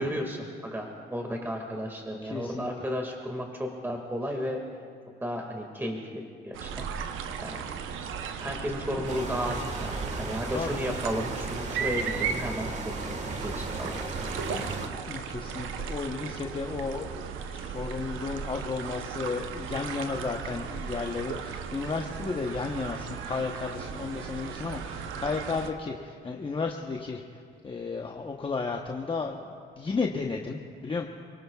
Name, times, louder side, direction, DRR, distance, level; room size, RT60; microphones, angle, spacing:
voice 1, 0.0-4.6 5.2-6.9 7.4-7.6 8.4-12.7 13.0-14.0, equal, 10° right, 1 dB, 2.0 m, -33 dB
voice 2, 2.2-2.7 7.0-7.3 8.9-9.1 10.5-10.7 14.1-14.7 15.1-17.2 17.5-27.2 27.6-31.1, left 4 dB, 25° left, 1 dB, 1.0 m, -33 dB
sound 1, 6.5-25.7, right 7 dB, 85° right, 0.8 m, -36 dB
sound 2, 9.1-14.9, right 2 dB, 35° right, 1.6 m, -36 dB
28.5 x 18.5 x 2.4 m, 2.2 s
cardioid pair, 90°, 20 cm